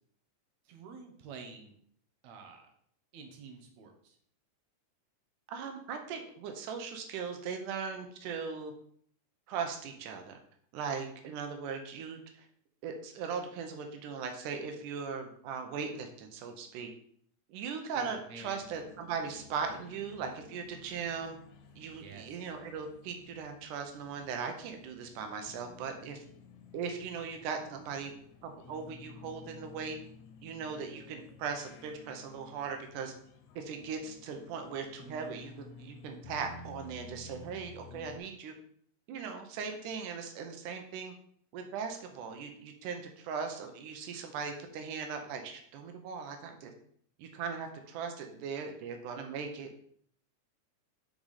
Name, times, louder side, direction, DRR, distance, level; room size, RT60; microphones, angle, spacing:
voice 1, 0.7-1.7 2.2-2.7 3.1-4.2 17.9-18.6 21.9-22.5, right 5 dB, 70° right, 3 dB, 2.2 m, -49 dB
voice 2, 5.5-8.7 9.5-10.4 10.7-12.5 12.8-16.9 17.5-21.4 21.8-26.2 26.7-28.1 28.4-30.0 30.4-33.1 33.6-38.6 39.1-41.1 41.5-46.7 47.2-49.8, right 6 dB, 90° right, 5 dB, 2.3 m, -39 dB
sound 1, 18.4-38.2, left 4 dB, 70° left, 1.9 m, -54 dB
5.9 x 5.1 x 4.2 m, 0.63 s
omnidirectional pair, 3.5 m